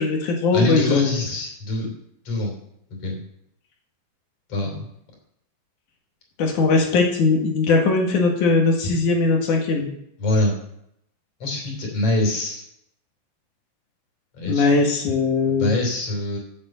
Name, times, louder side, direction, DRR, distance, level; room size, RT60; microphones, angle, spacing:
voice 1, 0.0-1.1 6.4-9.9 14.4-15.7, left 4 dB, 55° left, 1 dB, 2.8 m, -20 dB
voice 2, 0.5-1.9 2.3-2.5 3.0-3.2 4.5-4.9 10.2-10.5 11.4-12.6 14.3-14.7 15.5-16.4, left 1 dB, 40° left, 0 dB, 3.8 m, -24 dB
9.8 x 7.4 x 7.6 m, 0.75 s
omnidirectional pair, 5.0 m